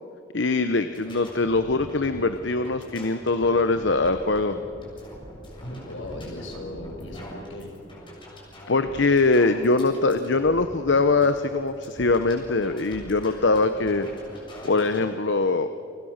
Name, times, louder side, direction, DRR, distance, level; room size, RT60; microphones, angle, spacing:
voice 1, 0.3-4.6 8.7-14.1 14.6-15.7, left 3 dB, 65° left, 10 dB, 0.9 m, -22 dB
sound 1, 0.9-15.0, equal, 25° left, 7.2 m, -43 dB
voice 2, 5.6-7.7, left 1 dB, 85° left, 3 dB, 5.3 m, -37 dB
29.5 x 25.0 x 6.6 m, 2.5 s
head